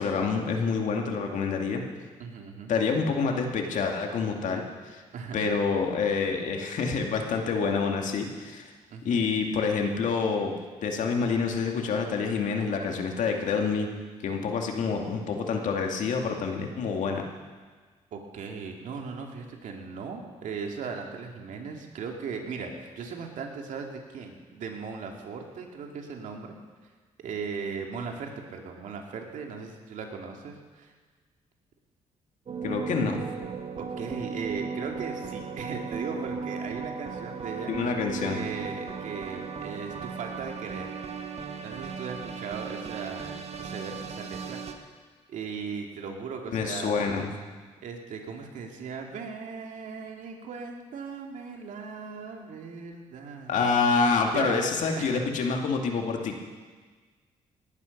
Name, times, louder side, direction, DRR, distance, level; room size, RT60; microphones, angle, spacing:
voice 1, 0.0-1.8 2.7-5.0 5.3-8.7 9.0-10.5 10.8-13.9 14.2-17.2 32.6-33.2 37.7-38.4 46.5-47.3 53.5-56.4, left 5 dB, 70° left, 2 dB, 2.3 m, -27 dB
voice 2, 2.2-2.7 5.1-5.6 8.9-9.3 18.1-26.6 27.2-30.9 33.8-37.9 38.2-40.9 41.6-44.6 45.3-47.1 47.8-53.8 54.3-54.7 55.0-55.2, right 5 dB, 70° right, 2 dB, 2.3 m, -38 dB
sound 1, 32.5-44.7, right 5 dB, 50° right, 1.6 m, -36 dB
18.5 x 11.5 x 5.3 m, 1.4 s
cardioid pair, 75°, 13 cm